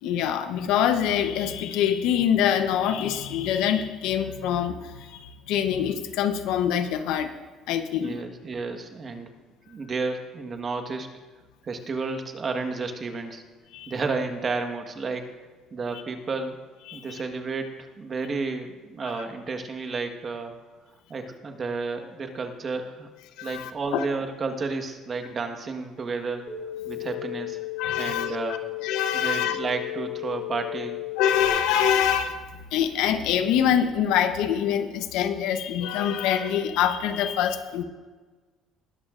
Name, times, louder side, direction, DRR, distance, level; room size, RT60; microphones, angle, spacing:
voice 1, 0.0-7.3 7.7-8.2 13.7-13.9 16.9-17.1 23.4-24.0 27.8-28.3 28.8-29.6 31.2-32.4 32.7-37.8, left 9 dB, 80° left, 8 dB, 0.9 m, -25 dB
voice 2, 7.9-9.3 9.7-11.1 11.6-13.4 13.9-15.3 15.7-16.6 16.9-20.5 21.1-23.1 23.4-26.4 26.8-27.6 28.0-28.6 29.1-31.0, right 4 dB, 35° right, 5 dB, 1.4 m, -31 dB
sound 1, 26.5-31.5, left 17 dB, 20° left, 4.4 m, -34 dB
20.0 x 13.0 x 2.5 m, 1.4 s
cardioid pair, 115°, 0 cm